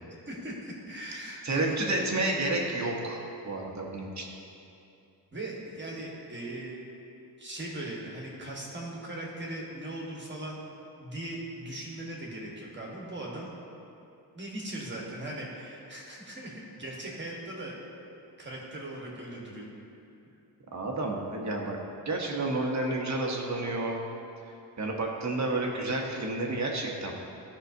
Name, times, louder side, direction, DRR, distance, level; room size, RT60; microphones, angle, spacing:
voice 1, 0.2-1.8 5.3-6.7 7.4-10.6 11.0-13.5 14.3-17.8 18.4-19.7, right 1 dB, 25° right, -3 dB, 1.3 m, -39 dB
voice 2, 1.4-4.2 20.7-21.8 22.0-24.0 24.8-27.1, right 2 dB, 45° right, 0 dB, 0.9 m, -30 dB
13.0 x 5.6 x 2.7 m, 2.7 s
wide cardioid pair, 130°, 40 cm